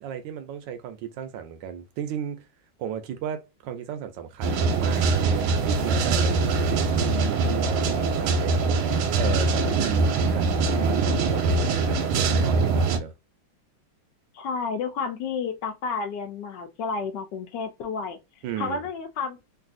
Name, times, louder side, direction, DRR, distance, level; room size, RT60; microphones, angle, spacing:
voice 1, 0.0-2.5 2.8-13.1 18.4-18.8, right 9 dB, 75° right, 1.1 m, -35 dB
sound 1, 4.4-13.0, right 4 dB, 90° right, 1.5 m, -23 dB
voice 2, 14.3-18.2 18.6-19.4, left 5 dB, 70° left, 1.1 m, -31 dB
3.2 x 2.6 x 2.4 m
omnidirectional pair, 2.3 m